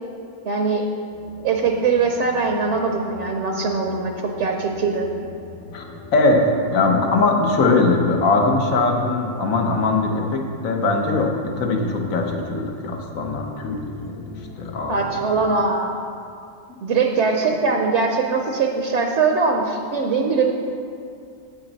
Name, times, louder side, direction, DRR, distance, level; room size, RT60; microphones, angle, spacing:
voice 1, 0.4-0.8 1.4-4.1 4.4-5.1 14.9-16.0 16.8-20.5, right 4 dB, 65° right, 2 dB, 0.9 m, -21 dB
sound 1, 1.1-15.5, left 2 dB, 65° left, 1.2 m, -40 dB
voice 2, 6.1-14.2 14.6-15.0, left 3 dB, 85° left, 2 dB, 1.4 m, -21 dB
8.9 x 8.2 x 4.0 m, 2.4 s
omnidirectional pair, 1.4 m